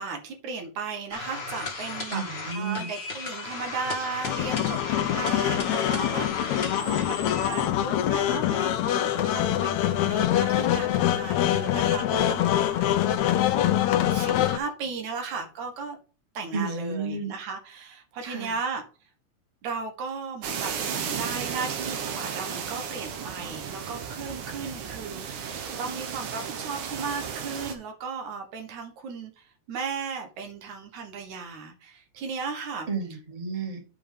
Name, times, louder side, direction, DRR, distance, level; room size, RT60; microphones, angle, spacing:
voice 1, 0.0-2.2 2.5-12.9 13.6-16.0 16.3-18.8 19.6-20.7 21.1-32.9, right 4 dB, 75° right, 2.8 m, -36 dB
sound 1, 1.1-7.7, left 3 dB, 50° left, 0.7 m, -36 dB
voice 2, 2.1-2.9 16.5-17.3 18.2-18.5 32.9-33.8, right 4 dB, 15° right, 1.5 m, -32 dB
sound 2, 4.2-14.6, left 11 dB, 75° left, 2.0 m, -24 dB
sound 3, 20.4-27.7, right 7 dB, 90° right, 2.8 m, -34 dB
8.2 x 5.3 x 5.2 m
omnidirectional pair, 3.5 m